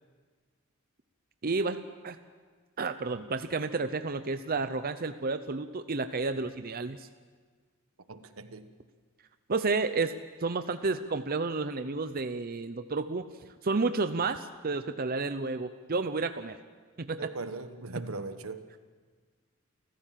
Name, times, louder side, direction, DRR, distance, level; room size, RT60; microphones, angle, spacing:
voice 1, 1.4-2.2 2.8-7.1 9.5-13.2 13.6-16.6 17.0-17.3, right 3 dB, 45° right, 10 dB, 0.7 m, -31 dB
voice 2, 8.1-8.7 17.2-18.7, right 3 dB, 85° right, 10 dB, 1.4 m, -39 dB
29.5 x 14.5 x 7.6 m, 1.5 s
head